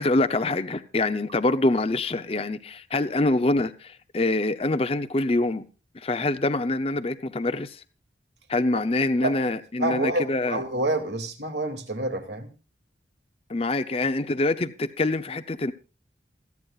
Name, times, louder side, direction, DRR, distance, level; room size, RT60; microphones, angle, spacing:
voice 1, 0.0-5.6 5.9-7.8 8.5-10.6 13.5-15.7, left 2 dB, 35° left, 0.6 m, -25 dB
voice 2, 9.8-12.5, right 2 dB, 75° right, 2.4 m, -28 dB
27.5 x 9.5 x 2.4 m
head